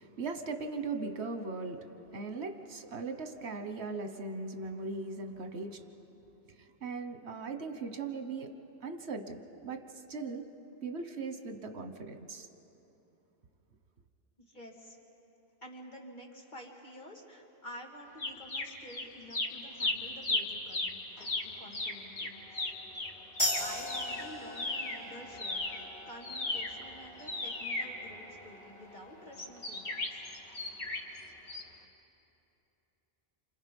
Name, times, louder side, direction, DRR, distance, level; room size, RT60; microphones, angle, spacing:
voice 1, 0.0-1.9 2.1-5.8 6.6-8.5 8.8-9.8 10.1-10.4 10.7-12.5, right 4 dB, 80° right, 7 dB, 1.4 m, -39 dB
voice 2, 14.4-15.0 15.6-22.6 23.5-30.2, equal, 45° left, -1 dB, 2.6 m, -50 dB
sound 1, 18.2-19.0 19.3-25.0 25.3-28.6 29.3-31.2 31.5-31.6, left 2 dB, 80° left, 2.1 m, -36 dB
sound 2, 23.4-30.5, left 1 dB, 25° left, 4.1 m, -40 dB
28.0 x 26.0 x 5.4 m, 3.0 s
omnidirectional pair, 1.1 m